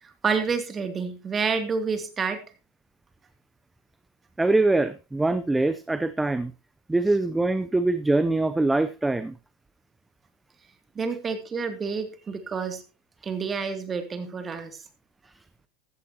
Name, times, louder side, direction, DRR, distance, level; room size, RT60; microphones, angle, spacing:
voice 1, 0.0-2.4 10.9-12.8 13.2-14.8, right 5 dB, 25° right, 7 dB, 2.5 m, -29 dB
voice 2, 4.4-6.5 6.9-9.3, right 2 dB, 10° right, 13 dB, 0.6 m, -23 dB
15.5 x 13.0 x 2.9 m, 0.29 s
supercardioid pair, 125°, 0 cm